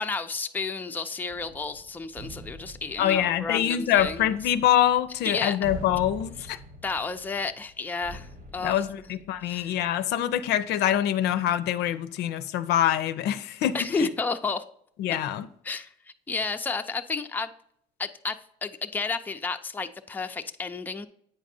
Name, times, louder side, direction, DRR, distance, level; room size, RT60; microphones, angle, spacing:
voice 1, 0.0-4.3 5.2-5.6 6.4-6.5 6.8-8.8 9.4-9.8 13.7-14.6 15.6-15.9 16.3-17.5 18.0-21.1, left 4 dB, 10° left, 0.4 m, -31 dB
sound 1, 1.3-9.9, equal, 60° right, 1.2 m, -45 dB
voice 2, 3.0-6.6 8.6-14.1 15.0-15.5, left 11 dB, 80° left, 0.5 m, -25 dB
8.3 x 5.2 x 2.7 m
cardioid pair, 110°, 17 cm